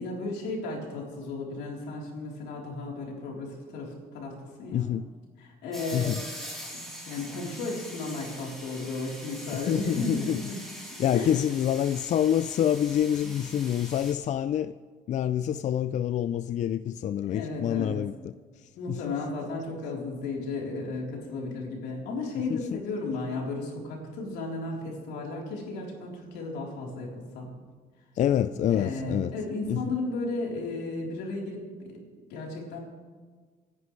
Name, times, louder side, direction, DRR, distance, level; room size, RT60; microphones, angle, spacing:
voice 1, 0.0-4.9 5.4-6.2 6.7-10.6 11.1-11.4 13.2-13.4 17.3-18.0 18.8-27.5 28.7-31.7 32.3-32.8, left 2 dB, 85° left, 3.7 m, -34 dB
voice 2, 4.7-5.0 5.9-6.2 9.7-10.4 11.0-14.7 15.1-18.3 18.9-19.0 22.5-22.8 28.2-29.3 29.7-29.8, left 10 dB, 45° left, 0.4 m, -27 dB
sound 1, 5.7-14.1, equal, ahead, 3.5 m, -43 dB
26.0 x 10.5 x 3.2 m
cardioid pair, 110°, 17 cm